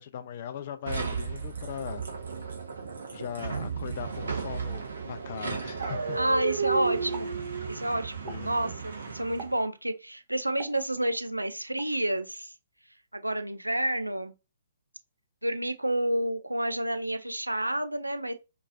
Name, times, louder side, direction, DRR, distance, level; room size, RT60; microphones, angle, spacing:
voice 1, 0.0-2.0 3.1-6.2 8.2-8.6, left 9 dB, 40° left, 0.5 m, -39 dB
sound 1, 0.9-9.6, right 5 dB, 65° right, 1.2 m, -34 dB
voice 2, 6.1-7.3 7.7-12.5 13.1-14.3 15.4-18.3, right 1 dB, 85° right, 0.5 m, -29 dB
Explosion, 7.1-7.4 8.3-8.6 9.4-9.8 10.6-11.3 11.8-12.0, right 5 dB, 30° right, 0.7 m, -45 dB
4.6 x 2.9 x 2.5 m
figure-of-eight pair, 125°, 0 cm